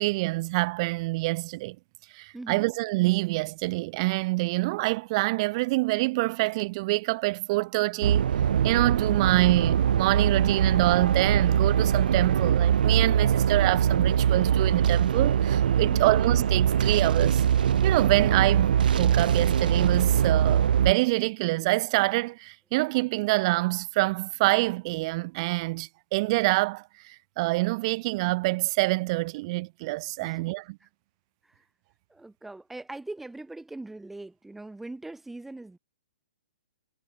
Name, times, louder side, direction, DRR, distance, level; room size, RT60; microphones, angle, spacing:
voice 1, 0.0-1.8 2.1-8.3 8.6-17.4 17.8-30.8, right 22 dB, 40° right, 1.1 m, -26 dB
voice 2, 2.3-2.6 30.2-30.4 32.1-35.8, right 2 dB, 5° right, 3.6 m, -41 dB
sound 1, 8.0-20.9, right 9 dB, 70° right, 0.5 m, -22 dB
hypercardioid pair, 145°, 5 cm